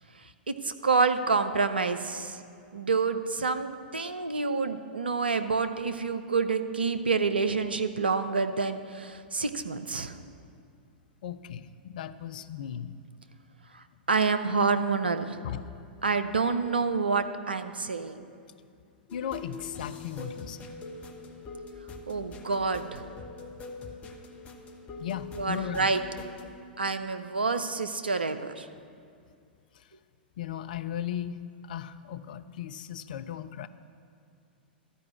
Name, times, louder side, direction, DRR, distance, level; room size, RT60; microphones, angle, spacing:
voice 1, 0.5-2.4 2.7-10.2 14.1-15.4 16.0-18.3 22.1-23.0 25.4-26.0 26.8-28.7, right 4 dB, 75° right, 9 dB, 0.6 m, -28 dB
voice 2, 11.2-13.0 15.4-15.6 19.1-20.8 25.0-25.9 29.7-29.9 30.4-33.7, left 9 dB, 55° left, 12 dB, 0.4 m, -37 dB
sound 1, 19.1-26.5, left 3 dB, 25° left, 1.0 m, -43 dB
12.5 x 4.8 x 8.4 m, 2.4 s
figure-of-eight pair, 100°, 5 cm